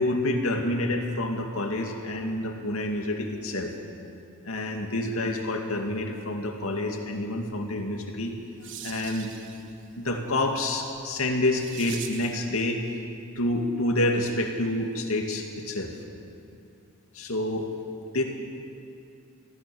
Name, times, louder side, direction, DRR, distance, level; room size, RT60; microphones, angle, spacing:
voice 1, 0.0-3.7 4.4-8.3 8.8-9.3 10.0-12.8 13.4-16.0 17.1-17.7 18.1-18.2, left 1 dB, 65° left, 3 dB, 2.4 m, -28 dB
sound 1, 8.2-12.5, right 8 dB, 55° right, 1.4 m, -44 dB
23.5 x 16.0 x 7.1 m, 2.6 s
head